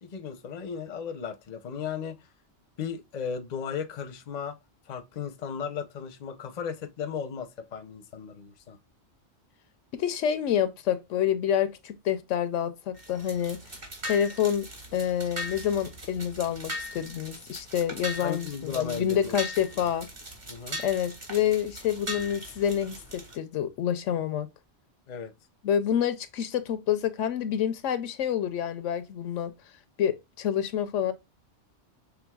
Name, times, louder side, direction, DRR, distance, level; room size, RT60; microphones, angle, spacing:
voice 1, 0.0-2.3 2.8-4.6 4.9-8.8 18.2-19.3 19.7-19.9 20.5-20.8 25.1-25.3, left 7 dB, 45° left, 0.7 m, -35 dB
voice 2, 9.9-13.6 14.0-20.1 20.8-24.5 25.6-29.5 30.0-31.1, left 9 dB, 80° left, 1.0 m, -28 dB
sound 1, 12.9-23.4, equal, 40° right, 1.7 m, -40 dB
6.0 x 3.5 x 2.2 m
omnidirectional pair, 1.2 m